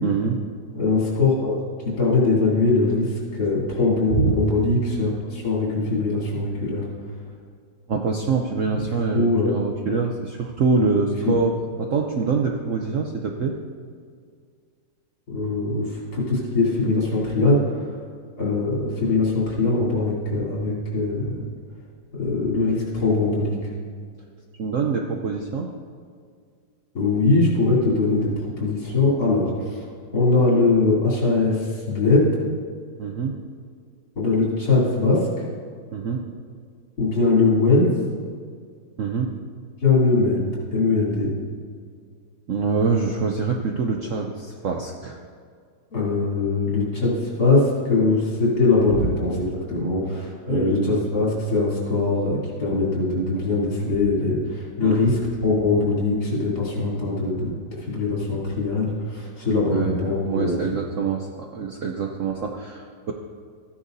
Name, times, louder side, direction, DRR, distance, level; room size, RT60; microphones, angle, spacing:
voice 1, 0.0-0.4 4.2-4.3 7.9-13.6 24.6-25.7 33.0-33.4 35.9-36.2 39.0-39.3 42.5-45.2 49.0-49.1 50.5-51.0 54.8-55.1 59.7-63.1, right 5 dB, 60° right, 1 dB, 0.8 m, -25 dB
voice 2, 0.7-6.8 8.9-9.5 10.8-10.9 11.2-11.3 15.3-17.6 18.4-21.4 22.2-23.6 26.9-29.8 30.1-32.3 34.2-35.3 37.0-37.9 39.8-41.3 45.9-49.3 49.7-57.5 57.8-60.8, left 3 dB, 60° left, -6 dB, 3.9 m, -21 dB
14.5 x 9.9 x 2.7 m, 2.1 s
omnidirectional pair, 2.0 m